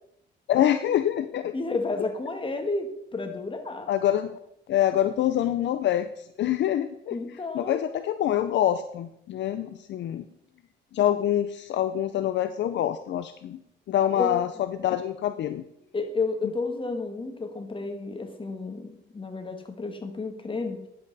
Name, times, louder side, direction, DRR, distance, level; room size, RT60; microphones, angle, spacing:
voice 1, 0.5-1.5 3.9-4.4 4.7-7.2 7.5-10.3 10.9-13.6 13.9-15.6, left 11 dB, 65° left, 9 dB, 0.6 m, -25 dB
voice 2, 1.5-3.9 7.1-7.8 14.1-14.4 15.9-20.8, left 3 dB, 25° left, 6 dB, 1.6 m, -31 dB
10.5 x 7.6 x 4.1 m, 0.78 s
cardioid pair, 90°, 20 cm